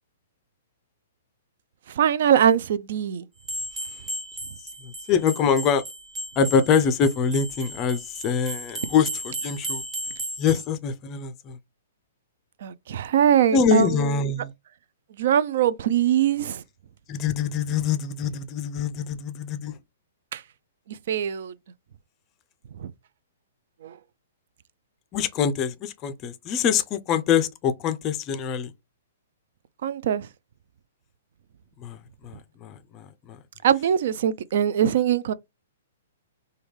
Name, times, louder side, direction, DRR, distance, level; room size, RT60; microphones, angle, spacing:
voice 1, 1.9-3.3 12.6-14.2 15.2-16.6 20.3-20.4 20.9-21.5 22.8-22.9 23.8-24.0 29.8-30.3 33.6-35.3, right 9 dB, 60° right, 0.3 m, -22 dB
sound 1, 3.4-10.7, right 1 dB, 10° right, 0.9 m, -35 dB
voice 2, 4.8-5.8 6.4-9.8 10.4-11.6 13.5-14.5 17.1-19.7 25.1-28.7 31.8-32.0 32.2-33.4, left 6 dB, 30° left, 0.4 m, -24 dB
3.4 x 2.2 x 3.2 m
hypercardioid pair, 125°, 0 cm